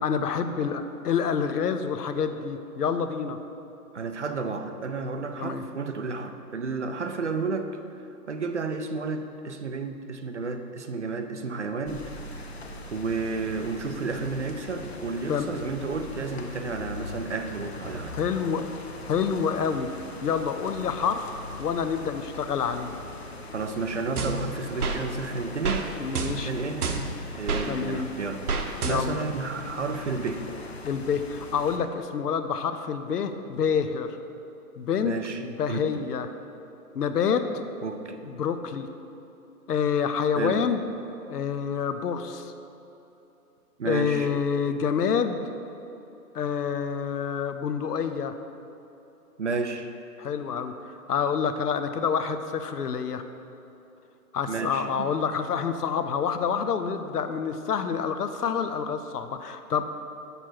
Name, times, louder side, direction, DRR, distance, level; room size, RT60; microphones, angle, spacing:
voice 1, 0.0-3.4 5.4-5.6 15.3-15.6 18.1-18.7 19.1-22.9 26.0-26.5 27.7-28.1 28.8-29.2 30.8-34.2 34.8-36.3 36.9-37.6 38.3-38.9 39.7-40.8 41.3-42.5 43.8-45.4 46.3-48.3 50.2-53.2 54.3-59.8, left 6 dB, 75° left, 9 dB, 0.7 m, -27 dB
voice 2, 3.9-7.7 8.3-12.4 12.9-18.2 23.5-25.8 26.3-26.9 27.4-30.4 35.0-35.4 35.7-35.9 37.8-38.3 40.4-40.6 43.8-44.3 49.4-49.9 54.5-55.1, right 4 dB, 50° right, 7 dB, 0.5 m, -31 dB
sound 1, 11.8-31.8, left 2 dB, 45° left, 0.6 m, -41 dB
sound 2, 24.2-25.0 25.6-25.8 26.1-27.7 28.5-29.3, right 4 dB, 70° right, 1.0 m, -29 dB
7.5 x 6.7 x 4.6 m, 3.0 s
hypercardioid pair, 170°, 47 cm